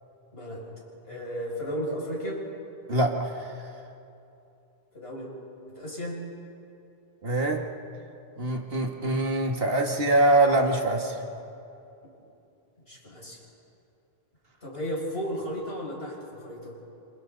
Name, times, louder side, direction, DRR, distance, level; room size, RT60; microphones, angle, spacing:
voice 1, 0.3-0.7 1.0-2.4 4.9-5.3 5.7-6.2 12.9-13.4 14.6-16.8, equal, 80° left, -5 dB, 7.1 m, -34 dB
voice 2, 2.9-3.6 7.2-7.6 8.4-11.2, right 2 dB, 70° right, 2 dB, 2.1 m, -24 dB
29.0 x 28.0 x 4.1 m, 2.8 s
omnidirectional pair, 1.0 m